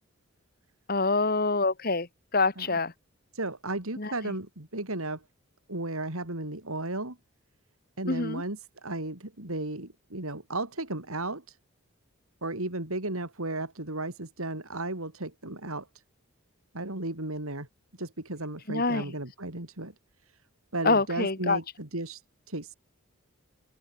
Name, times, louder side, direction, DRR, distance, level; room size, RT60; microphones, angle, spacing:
voice 1, 0.9-2.1 2.3-2.9 4.0-4.1 8.1-8.4 18.7-19.0 20.8-21.6, left 3 dB, 45° left, 1.6 m, -25 dB
voice 2, 3.3-5.2 5.7-7.2 8.0-11.6 12.4-15.9 16.7-17.7 18.0-19.9 20.7-22.2 22.5-22.7, right 2 dB, 80° right, 4.2 m, -34 dB
open air
head